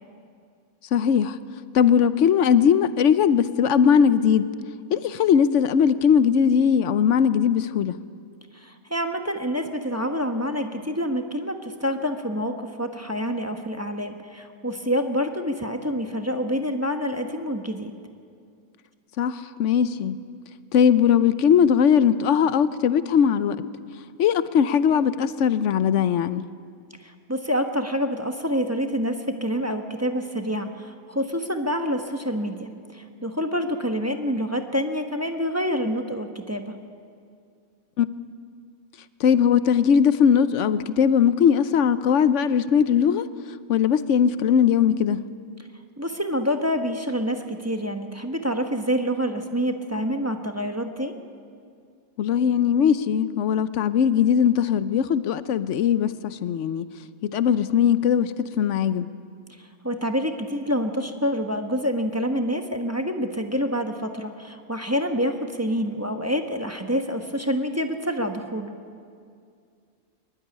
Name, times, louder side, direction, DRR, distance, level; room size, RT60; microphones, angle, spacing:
voice 1, 0.9-1.4 1.7-4.4 4.9-8.0 19.2-20.2 20.7-23.6 24.2-26.4 38.0-38.1 39.2-43.2 43.7-45.2 52.2-56.9 57.2-59.1, left 8 dB, 65° left, 14 dB, 0.9 m, -20 dB
voice 2, 8.5-17.9 27.0-36.8 46.0-51.1 59.6-68.7, equal, 10° right, 4 dB, 1.0 m, -27 dB
22.5 x 12.0 x 9.9 m, 2.3 s
omnidirectional pair, 1.5 m